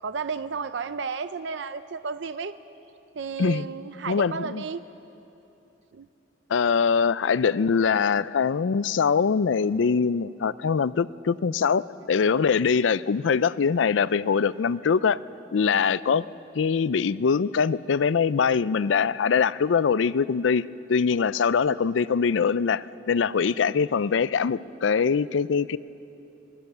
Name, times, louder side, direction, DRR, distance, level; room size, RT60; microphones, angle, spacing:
voice 1, 0.0-2.6 3.2-4.8 5.9-6.1 21.4-21.5, right 5 dB, 75° right, 12 dB, 0.5 m, -33 dB
voice 2, 4.1-4.6 6.5-15.2 15.5-16.2 16.5-20.6 20.9-25.8, left 6 dB, 90° left, 18 dB, 0.4 m, -23 dB
25.0 x 19.0 x 6.8 m, 2.9 s
head